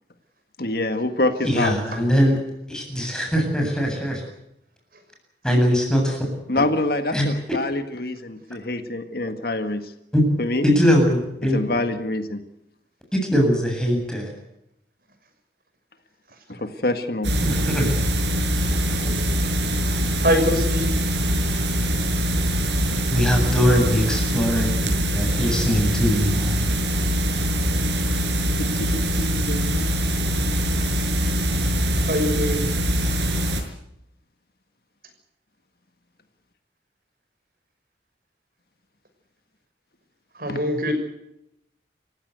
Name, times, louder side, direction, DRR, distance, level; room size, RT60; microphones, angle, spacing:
voice 1, 0.6-1.8 6.5-9.9 10.4-10.7 11.4-12.4 16.5-17.3 28.6-29.9 30.4-30.6 40.5-40.6, left 2 dB, 55° left, 8 dB, 1.7 m, -26 dB
voice 2, 1.4-2.4 2.7-4.2 5.4-6.2 6.5-6.6 7.1-7.3 10.1-10.2 10.6-11.6 13.1-14.3 17.4-17.9 19.0-19.1 23.1-26.6, equal, 5° left, 1 dB, 7.9 m, -21 dB
sound 1, 17.2-33.6, equal, 80° right, 6.3 m, -23 dB
voice 3, 20.2-20.9 32.1-32.7 40.3-40.9, equal, 55° right, 6 dB, 6.4 m, -23 dB
29.5 x 16.0 x 8.1 m, 0.81 s
head